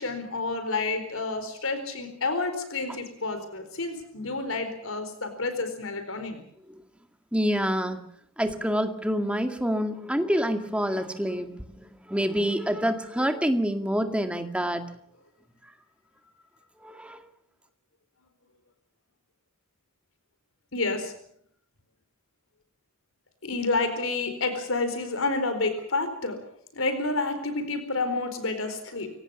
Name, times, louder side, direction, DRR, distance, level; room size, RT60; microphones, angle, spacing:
voice 1, 0.0-6.4 20.7-21.1 23.4-26.4 26.7-29.1, left 3 dB, 80° left, 8 dB, 4.4 m, -29 dB
voice 2, 7.3-8.0 8.4-14.8 16.8-17.2, equal, 5° right, 6 dB, 2.1 m, -27 dB
25.0 x 18.0 x 7.2 m, 0.66 s
head